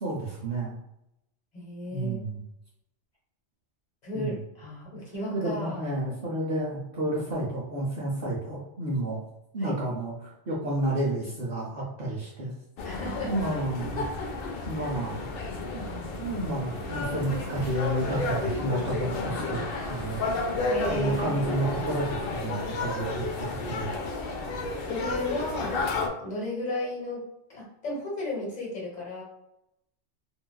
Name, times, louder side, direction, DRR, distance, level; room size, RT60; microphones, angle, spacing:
voice 1, 0.0-0.8 1.9-2.4 4.1-4.4 5.3-9.2 9.5-12.5 13.3-14.1 14.7-15.3 15.7-19.6 19.9-20.2 20.9-24.1, right 1 dB, 60° right, -5 dB, 0.8 m, -31 dB
voice 2, 1.5-2.2 4.0-5.8 9.6-9.8 12.8-13.3 14.9-15.0 20.7-21.8 24.8-25.9 26.2-27.2 27.5-29.2, left 1 dB, 40° left, -4 dB, 1.1 m, -34 dB
sound 1, 12.8-26.1, left 3 dB, 65° left, 0.7 m, -32 dB
sound 2, 16.8-22.4, right 2 dB, 85° right, 0.9 m, -44 dB
3.7 x 2.3 x 2.2 m, 0.83 s
omnidirectional pair, 1.2 m